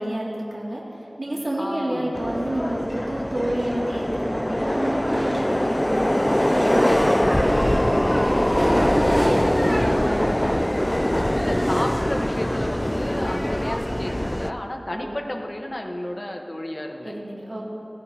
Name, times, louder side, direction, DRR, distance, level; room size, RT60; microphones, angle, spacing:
voice 1, 0.0-8.0 8.5-10.3 14.9-15.2 17.0-17.6, right 1 dB, 60° right, -5 dB, 2.5 m, -29 dB
voice 2, 1.6-2.1 6.8-7.2 11.3-17.1, left 1 dB, 40° left, 1 dB, 1.2 m, -32 dB
Subway metro underground, 2.1-14.5, equal, 15° left, 0.5 m, -22 dB
18.0 x 17.5 x 2.9 m, 2.9 s
wide cardioid pair, 40°, 0 cm